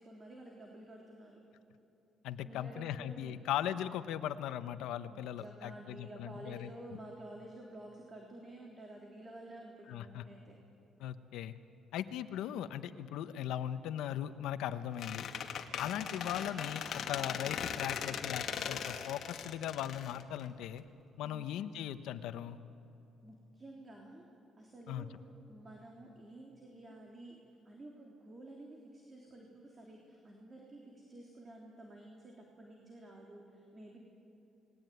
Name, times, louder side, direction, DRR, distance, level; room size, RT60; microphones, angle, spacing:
voice 1, 0.0-1.4 2.4-3.4 5.1-10.6 15.8-16.0 21.2-21.5 23.2-24.2 24.6-25.2 25.5-27.4 27.7-34.0, right 1 dB, 25° right, 0 dB, 3.5 m, -51 dB
voice 2, 2.2-6.7 9.9-10.2 11.0-11.5 11.9-15.3 15.8-20.8 21.2-22.6 24.9-25.1, left 11 dB, 85° left, 11 dB, 1.1 m, -39 dB
Squeak, 15.0-20.8, left 8 dB, 60° left, 1.9 m, -39 dB
29.0 x 20.5 x 9.4 m, 2.7 s
cardioid pair, 120°, 0 cm